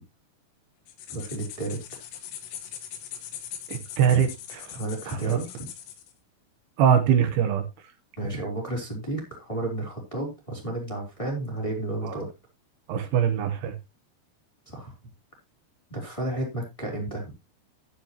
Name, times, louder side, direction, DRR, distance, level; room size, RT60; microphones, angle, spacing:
sound 1, 0.9-6.1, left 10 dB, 85° left, 3.6 m, -41 dB
voice 1, 1.1-1.8 4.7-5.7 8.2-12.3 14.7-14.9 15.9-17.3, right 2 dB, 10° left, 3.0 m, -32 dB
voice 2, 3.7-4.8 5.1-5.4 6.8-7.6 12.0-12.2 12.9-13.7, right 8 dB, 75° right, 3.1 m, -23 dB
12.0 x 9.8 x 2.9 m
omnidirectional pair, 4.8 m